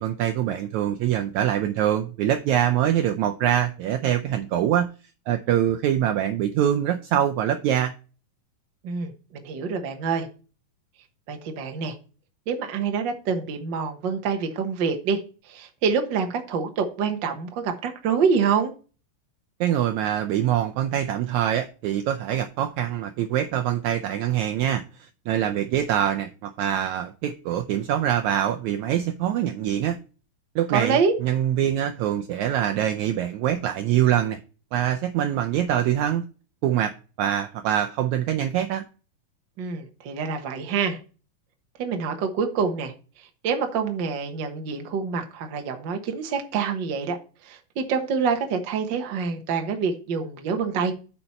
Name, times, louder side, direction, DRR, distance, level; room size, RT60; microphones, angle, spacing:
voice 1, 0.0-4.9 5.3-7.9 19.6-30.0 30.5-34.4 34.7-36.2 36.6-36.9 37.2-38.8, right 10 dB, 85° right, 1.6 m, -24 dB
voice 2, 8.8-10.3 11.3-11.9 12.5-15.2 15.4-18.7 30.7-31.1 39.6-41.0 41.8-42.9 43.2-47.2 47.4-50.9, right 5 dB, 60° right, 1.2 m, -26 dB
8.8 x 5.5 x 4.2 m
omnidirectional pair, 4.0 m